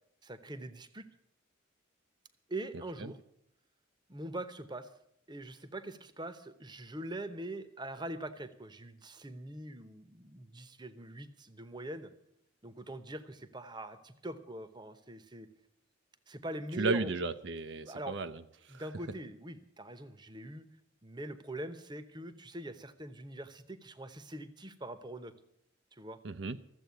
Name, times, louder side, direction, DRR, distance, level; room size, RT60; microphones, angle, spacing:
voice 1, 0.2-1.1 2.5-3.2 4.1-4.9 5.3-12.1 12.6-15.5 16.3-17.1 17.8-18.2 18.7-20.7 21.0-25.3 25.9-26.2, right 1 dB, 20° right, 11 dB, 0.9 m, -43 dB
voice 2, 16.8-18.4 18.7-18.8 26.2-26.6, right 3 dB, 65° right, 9 dB, 0.6 m, -34 dB
14.0 x 7.9 x 9.3 m, 0.73 s
head